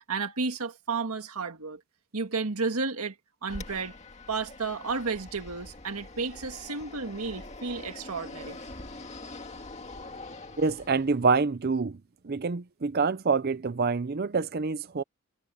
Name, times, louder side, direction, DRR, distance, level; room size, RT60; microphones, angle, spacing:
voice 1, 0.1-1.8 2.1-3.2 3.4-3.9 4.3-8.6, right 4 dB, 80° right, 1.8 m, -32 dB
Fixed-wing aircraft airplane, 3.5-11.3, left 2 dB, 30° left, 2.2 m, -44 dB
voice 2, 10.6-12.0 12.2-15.0, right 4 dB, 45° right, 0.5 m, -26 dB
head